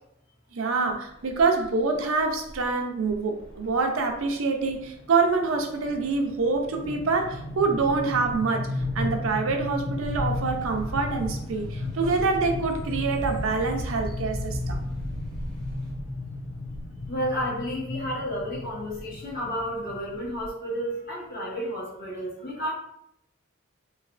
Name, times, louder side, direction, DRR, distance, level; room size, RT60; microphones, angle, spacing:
voice 1, 0.5-8.7 8.9-14.8, right 4 dB, 85° right, 3 dB, 0.5 m, -26 dB
sound 1, 1.4-1.6 2.5-2.6 3.0-3.1 3.4-3.7 4.1-20.5, left 2 dB, 70° left, 0.7 m, -34 dB
sound 2, 10.0-15.9, equal, ahead, 0.7 m, -37 dB
voice 2, 17.1-22.7, equal, 50° left, -6 dB, 1.3 m, -31 dB
3.1 x 2.9 x 2.4 m, 0.76 s
head